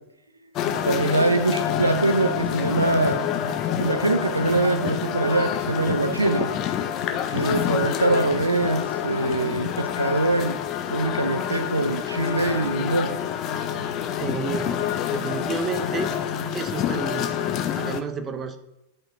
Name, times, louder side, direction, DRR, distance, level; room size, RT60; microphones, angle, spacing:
sound 1, 0.6-18.0, left 9 dB, 35° left, 0.6 m, -27 dB
voice 1, 0.9-3.2 3.8-6.5 7.3-10.6 10.9-13.1, right 2 dB, 80° right, 9 dB, 0.4 m, -23 dB
voice 2, 14.0-14.8 15.1-16.1 16.5-18.6, right 5 dB, 25° right, 10 dB, 0.6 m, -31 dB
10.5 x 4.4 x 2.6 m, 0.92 s
figure-of-eight pair, 90°, 0 cm